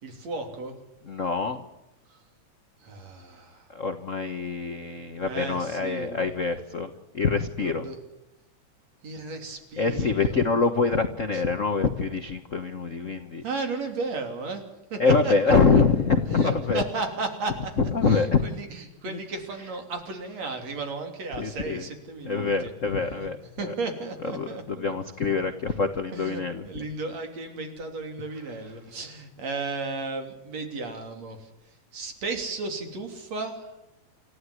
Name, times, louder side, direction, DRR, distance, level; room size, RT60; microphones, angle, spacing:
voice 1, 0.0-0.8 2.1-2.2 2.8-3.7 5.2-6.2 7.6-8.0 9.0-10.4 11.3-11.4 13.4-14.6 14.9-15.8 16.3-17.7 18.0-22.7 23.0-23.3 23.6-24.9 26.1-31.5 31.9-33.7, right 3 dB, 60° right, 5 dB, 4.3 m, -34 dB
voice 2, 1.0-1.6 3.7-7.8 9.8-13.4 15.0-16.8 17.8-18.4 19.1-19.2 21.4-21.8 22.2-23.7 24.3-26.9, left 4 dB, 60° left, 7 dB, 0.8 m, -25 dB
28.0 x 14.5 x 9.7 m, 0.93 s
omnidirectional pair, 3.4 m